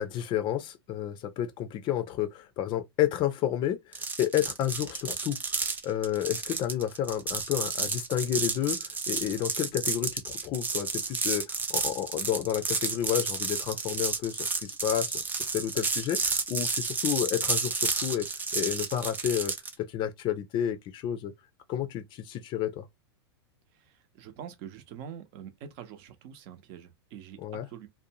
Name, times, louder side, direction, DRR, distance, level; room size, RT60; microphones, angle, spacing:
voice 1, 0.0-15.2 15.5-21.3 21.7-22.8 27.4-27.7, left 11 dB, 35° left, 0.5 m, -31 dB
sound 1, 3.9-19.7, right 4 dB, 15° right, 0.5 m, -31 dB
voice 2, 23.7-27.9, right 8 dB, 45° right, 0.8 m, -45 dB
2.6 x 2.2 x 2.8 m
hypercardioid pair, 120°, 14 cm